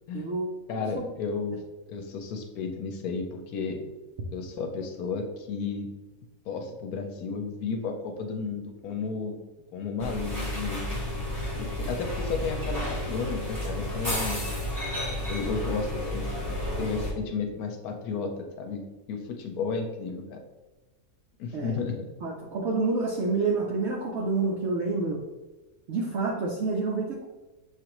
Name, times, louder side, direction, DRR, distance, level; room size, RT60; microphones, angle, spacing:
voice 1, 0.1-1.1 21.5-21.8 22.2-25.2 25.9-27.3, right 3 dB, 75° right, -1 dB, 0.6 m, -28 dB
voice 2, 0.7-1.6 1.9-3.8 4.3-5.9 6.5-9.4 9.7-11.0 11.6-14.4 15.3-18.3 18.6-18.8 19.1-20.4 21.4-22.0, left 5 dB, 70° left, 4 dB, 1.0 m, -33 dB
sound 1, 10.0-17.1, left 1 dB, 15° right, 0.9 m, -31 dB
6.3 x 2.5 x 2.9 m, 1.1 s
omnidirectional pair, 1.8 m